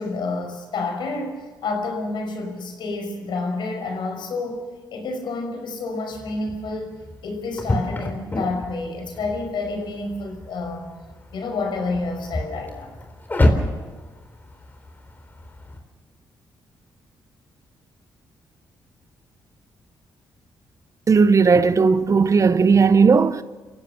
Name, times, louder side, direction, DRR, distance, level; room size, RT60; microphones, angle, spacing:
voice 1, 0.0-4.6 4.9-6.9 7.2-10.9 11.3-12.9, left 3 dB, 75° left, 5.7 m, -29 dB
sound 1, 6.1-15.8, left 1 dB, 25° left, 3.9 m, -28 dB
voice 2, 21.1-23.4, right 5 dB, 40° right, 0.9 m, -16 dB
28.0 x 15.5 x 6.9 m
cardioid pair, 75°, 8 cm